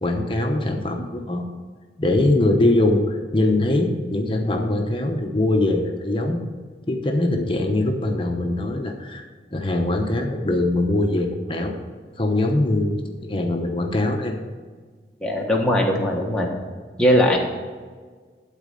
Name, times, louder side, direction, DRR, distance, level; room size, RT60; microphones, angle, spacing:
voice 1, 0.0-1.4 2.0-6.4 6.9-9.2 9.5-11.7 12.2-14.3, left 2 dB, 30° left, 3 dB, 0.9 m, -22 dB
voice 2, 15.2-16.5 17.0-17.4, left 1 dB, 5° left, -2 dB, 1.3 m, -19 dB
12.0 x 4.1 x 6.6 m, 1.5 s
head